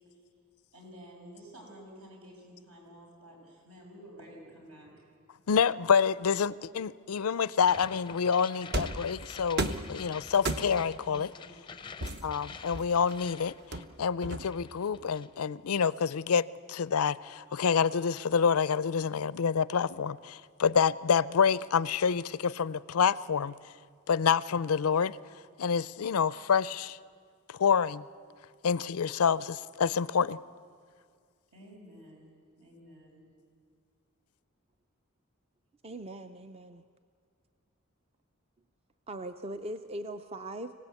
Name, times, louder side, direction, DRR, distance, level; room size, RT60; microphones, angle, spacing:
voice 1, 0.7-4.9 11.0-11.5 31.5-32.3 32.6-33.2, equal, 75° right, 6.2 m, -51 dB
voice 2, 5.5-11.3 12.2-13.5 14.0-23.5 24.1-25.2 25.6-27.0 27.6-28.0 28.6-30.4, left 6 dB, 90° left, 0.5 m, -27 dB
sound 1, 7.6-14.1 14.4-15.4, left 5 dB, 20° left, 0.5 m, -47 dB
sound 2, 8.7-9.1 9.6-9.9 10.4-10.9 12.0-13.1 13.7-14.7, right 2 dB, 50° right, 0.9 m, -34 dB
voice 3, 35.8-36.8 39.1-40.7, right 1 dB, 30° right, 0.5 m, -40 dB
25.5 x 17.0 x 8.3 m
head